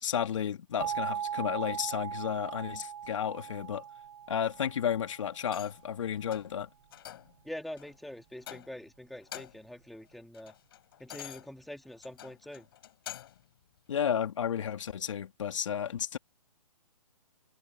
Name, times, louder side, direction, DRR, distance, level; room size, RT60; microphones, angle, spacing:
voice 1, 0.0-3.8 4.3-6.7 13.9-16.2, left 8 dB, 55° left, 3.2 m, -32 dB
sound 1, 0.8-5.5, right 8 dB, 45° right, 1.1 m, -39 dB
sound 2, 5.4-5.9 6.3-6.6 6.9-7.4 7.8-7.9 8.4-8.9 9.2-9.7 10.1-13.5 14.0-14.1, left 12 dB, 40° left, 4.9 m, -47 dB
voice 2, 7.4-10.6 11.0-12.7, left 1 dB, ahead, 2.1 m, -44 dB
hypercardioid pair, 165°, 19 cm